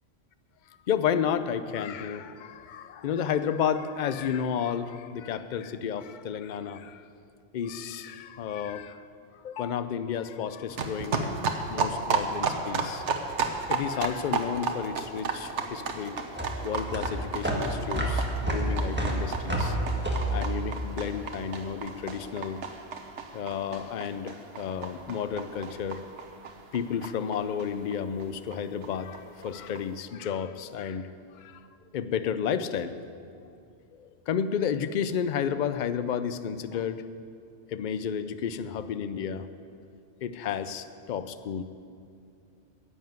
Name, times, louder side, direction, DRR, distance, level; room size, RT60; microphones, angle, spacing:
voice 1, 0.9-7.0 7.5-9.0 9.4-16.2 16.6-19.8 20.3-22.6 23.3-26.0 26.7-31.1 31.4-31.6 31.9-32.9 34.0-37.0 37.7-39.5 40.2-41.6, left 8 dB, 55° left, 12 dB, 0.6 m, -32 dB
sound 1, 10.7-28.0 28.2-28.3 28.5-28.6 28.8-28.9 29.1-29.8, right 5 dB, 85° right, 1.2 m, -34 dB
sound 2, 15.0-21.5, right 1 dB, 10° right, 1.5 m, -30 dB
11.0 x 7.2 x 9.2 m, 2.4 s
omnidirectional pair, 1.2 m